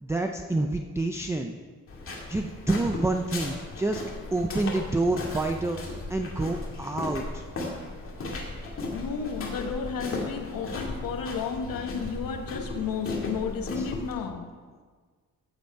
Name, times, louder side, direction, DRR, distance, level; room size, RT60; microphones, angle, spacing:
voice 1, 0.0-1.5 2.3-4.0 4.3-5.8 6.1-7.4 13.8-13.9, right 2 dB, 10° right, 4 dB, 0.4 m, -28 dB
sound 1, 1.9-14.1, left 2 dB, 40° left, 2.1 m, -36 dB
voice 2, 8.9-14.5, left 6 dB, 80° left, 5 dB, 1.2 m, -32 dB
15.0 x 8.0 x 4.6 m, 1.5 s
wide cardioid pair, 180°, 34 cm